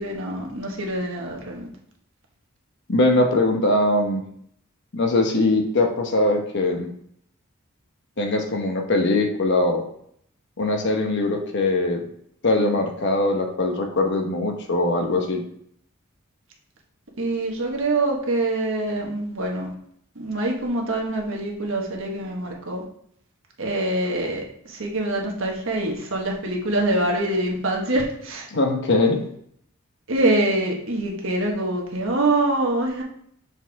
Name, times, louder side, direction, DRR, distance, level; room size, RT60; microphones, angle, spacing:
voice 1, 0.0-1.7 17.2-19.7 20.1-22.8 23.6-28.5 30.1-33.0, right 2 dB, 60° right, 0 dB, 1.4 m, -25 dB
voice 2, 2.9-4.2 4.9-6.9 8.2-9.8 10.6-12.1 12.4-15.4 28.5-29.2, left 2 dB, 50° left, 3 dB, 0.9 m, -21 dB
6.8 x 4.5 x 3.5 m, 0.68 s
head